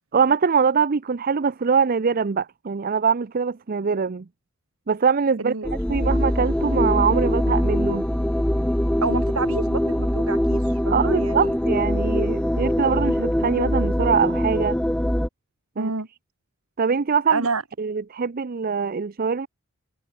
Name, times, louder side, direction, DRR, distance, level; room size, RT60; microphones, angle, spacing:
voice 1, 0.1-4.2 4.9-5.5 5.9-8.0 10.9-14.8 15.8-15.9 16.8-17.5 17.8-19.5, right 6 dB, 40° right, 0.5 m, -23 dB
voice 2, 5.4-5.7 9.0-11.5 15.8-16.1 17.3-17.6, right 3 dB, 70° right, 1.8 m, -29 dB
sound 1, 5.6-15.3, equal, 5° left, 0.7 m, -23 dB
head